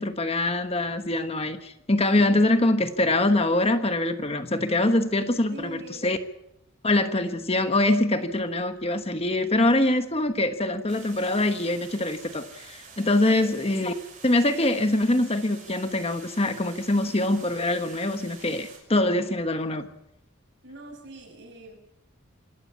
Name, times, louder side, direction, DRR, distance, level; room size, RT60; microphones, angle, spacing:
voice 1, 0.0-6.2 6.8-13.9 14.2-19.9, left 2 dB, 30° left, 8 dB, 1.2 m, -24 dB
voice 2, 5.5-6.1 13.3-13.5 20.6-21.7, right 1 dB, 60° right, 2 dB, 7.6 m, -42 dB
sound 1, 10.9-18.8, right 5 dB, 40° right, 6.1 m, -47 dB
26.5 x 13.0 x 8.4 m, 0.82 s
head